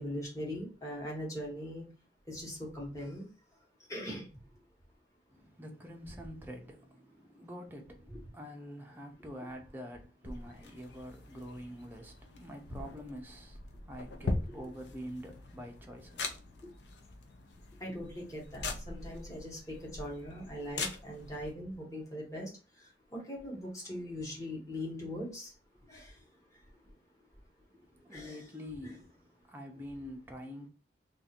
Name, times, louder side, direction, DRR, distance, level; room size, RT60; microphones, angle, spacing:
voice 1, 0.0-1.8 2.3-3.2 3.9-4.2 17.8-19.6 20.0-22.5 23.3-25.5 25.9-26.0 28.1-28.4, equal, 20° left, 1.3 m, -40 dB
voice 2, 5.3-16.8 27.9-30.7, equal, 10° right, 0.6 m, -46 dB
sound 1, 10.2-21.5, left 3 dB, 75° left, 0.6 m, -42 dB
2.6 x 2.5 x 4.2 m
head